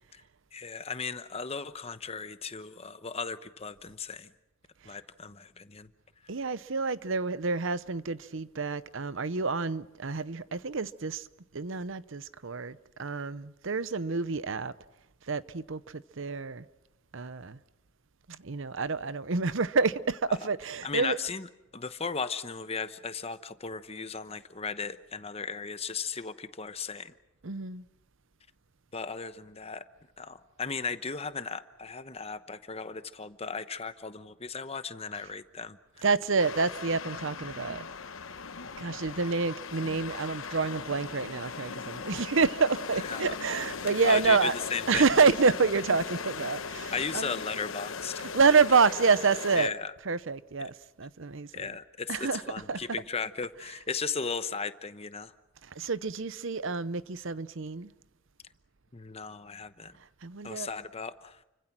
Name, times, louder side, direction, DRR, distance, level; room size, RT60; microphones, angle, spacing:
voice 1, 0.5-4.3 4.8-5.9 20.3-20.4 20.8-27.1 28.9-29.8 30.2-36.0 43.1-43.3 44.0-45.1 46.9-48.3 49.6-49.9 50.6-50.7 51.5-55.3 58.9-60.0 60.4-61.4, left 5 dB, 30° left, 1.0 m, -36 dB
voice 2, 6.3-11.3 11.5-14.7 15.3-16.6 17.1-17.6 18.3-21.2 27.4-27.9 36.0-37.9 38.8-44.5 44.9-47.3 48.2-49.7 50.0-51.7 52.1-52.9 53.6-53.8 55.6-57.9 60.2-60.7, right 4 dB, 65° right, 0.8 m, -28 dB
sound 1, 36.4-49.7, left 5 dB, 70° left, 1.0 m, -39 dB
29.5 x 25.0 x 6.1 m
head